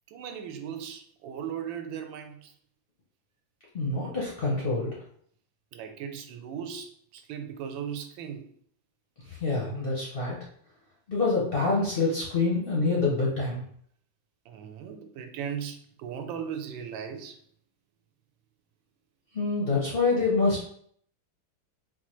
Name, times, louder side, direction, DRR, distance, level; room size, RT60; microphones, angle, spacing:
voice 1, 0.1-2.5 5.7-8.5 14.5-17.4, right 8 dB, 80° right, 6 dB, 1.3 m, -37 dB
voice 2, 3.7-4.9 9.3-10.4 11.1-13.6 19.3-20.6, left 3 dB, 65° left, -5 dB, 0.5 m, -26 dB
4.3 x 2.4 x 3.0 m, 0.63 s
omnidirectional pair, 2.1 m